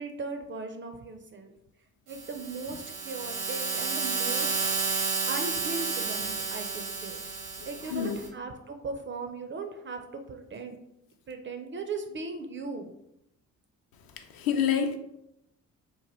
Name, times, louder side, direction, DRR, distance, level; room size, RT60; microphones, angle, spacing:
voice 1, 0.0-1.5 2.1-4.6 5.3-10.7 11.3-12.9, right 3 dB, 30° right, 6 dB, 0.4 m, -38 dB
sound 1, 2.1-8.3, right 4 dB, 85° right, 0.8 m, -31 dB
voice 2, 7.6-8.2 14.2-15.0, left 8 dB, 55° left, 5 dB, 0.5 m, -28 dB
3.0 x 2.1 x 3.0 m, 0.82 s
hypercardioid pair, 45°, 43 cm